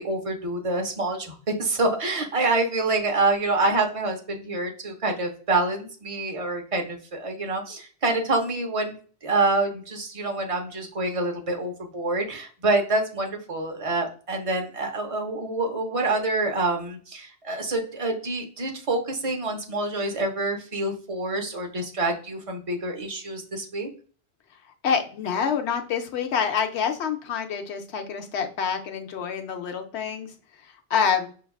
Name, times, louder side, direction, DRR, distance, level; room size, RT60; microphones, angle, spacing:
voice 1, 0.0-9.0 9.2-23.9, right 2 dB, 35° right, 3 dB, 0.7 m, -26 dB
voice 2, 24.8-30.3 30.6-31.3, left 6 dB, 90° left, 5 dB, 0.9 m, -27 dB
5.7 x 2.3 x 2.3 m, 0.41 s
omnidirectional pair, 1.1 m